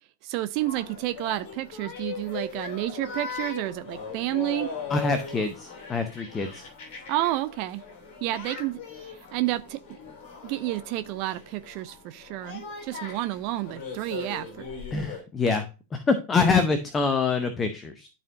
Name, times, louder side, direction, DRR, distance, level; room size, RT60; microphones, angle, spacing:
voice 1, 0.2-4.7 7.1-7.8 8.2-8.8 9.1-9.8 10.4-14.7, right 16 dB, 45° right, 0.4 m, -30 dB
sound 1, 0.5-15.2, left 5 dB, 45° left, 3.1 m, -39 dB
voice 2, 4.9-6.7 14.9-15.7 15.9-18.1, left 4 dB, 20° left, 0.7 m, -25 dB
12.0 x 4.3 x 2.6 m
figure-of-eight pair, 90°, 0 cm